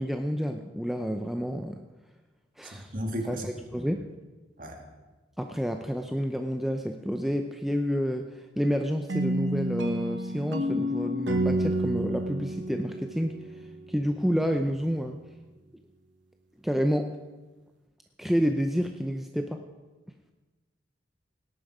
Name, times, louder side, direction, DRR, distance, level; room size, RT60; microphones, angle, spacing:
voice 1, 0.0-1.8 2.6-2.9 3.3-4.0 5.4-15.2 16.6-17.2 18.2-19.6, equal, ahead, 5 dB, 0.5 m, -29 dB
voice 2, 2.6-3.5 3.7-3.9 4.6-4.8, equal, 45° right, 2 dB, 2.2 m, -35 dB
sound 1, 9.1-14.0, right 1 dB, 85° right, 1.0 m, -30 dB
18.0 x 10.5 x 4.9 m, 1.2 s
head